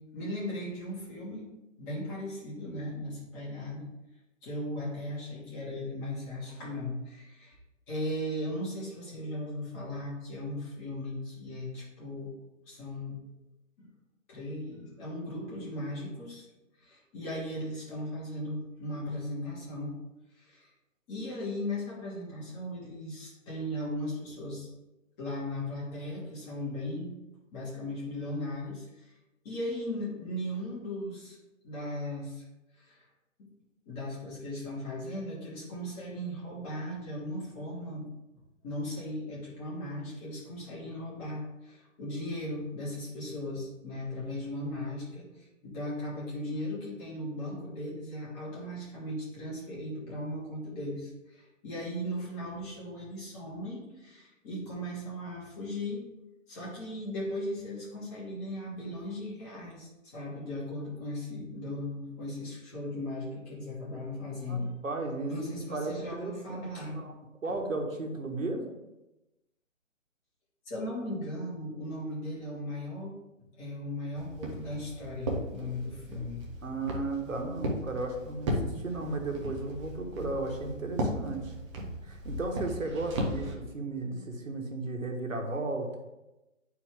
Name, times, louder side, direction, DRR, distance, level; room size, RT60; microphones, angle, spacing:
voice 1, 0.0-1.5 1.8-3.9 4.4-7.6 7.9-12.3 12.6-13.2 13.8-13.9 14.3-16.4 16.8-19.9 20.3-20.7 21.1-24.7 25.2-27.1 27.5-29.1 29.4-31.4 31.6-32.4 32.7-33.0 33.4-33.5 33.9-38.1 38.6-56.1 56.5-64.7 65.3-67.0 67.5-67.6 70.7-73.2 73.6-76.4, left 1 dB, 25° left, -6 dB, 2.6 m, -37 dB
voice 2, 64.5-67.1 67.4-68.7 76.6-81.5 82.0-86.0, right 2 dB, 80° right, 3 dB, 1.6 m, -35 dB
Walk footsteps, 74.2-83.5, equal, 25° right, 1.0 m, -36 dB
10.0 x 4.6 x 3.6 m, 0.98 s
figure-of-eight pair, 145°, 38 cm